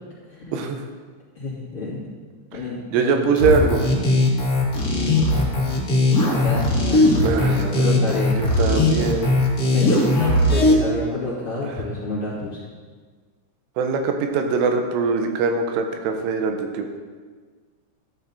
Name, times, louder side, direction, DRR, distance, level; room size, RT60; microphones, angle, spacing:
voice 1, 0.5-0.8 2.9-3.8 7.2-7.7 8.4-9.3 13.8-17.0, right 4 dB, 80° right, 5 dB, 3.5 m, -22 dB
voice 2, 1.3-2.0 2.5-3.6 3.9-4.0 5.0-5.2 6.4-8.5 9.7-12.6, left 2 dB, 35° left, -8 dB, 2.8 m, -30 dB
sound 1, 3.3-10.7, left 2 dB, 55° left, 1.0 m, -19 dB
13.5 x 10.5 x 4.1 m, 1.5 s
omnidirectional pair, 5.5 m